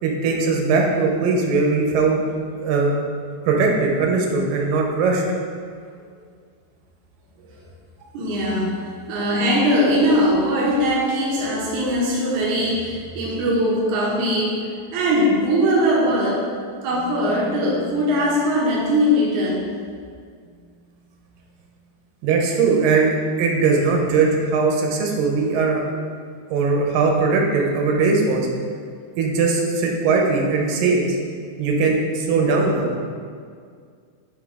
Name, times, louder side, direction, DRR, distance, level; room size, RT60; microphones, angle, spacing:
voice 1, 0.0-2.2 2.6-2.9 3.5-5.2 22.2-26.0 26.5-28.5 29.2-31.1 31.6-32.9, right 4 dB, 85° right, 0 dB, 2.6 m, -20 dB
voice 2, 8.1-16.5 16.8-19.7, equal, 70° right, -6 dB, 2.3 m, -21 dB
9.1 x 3.5 x 4.9 m, 2.1 s
omnidirectional pair, 4.0 m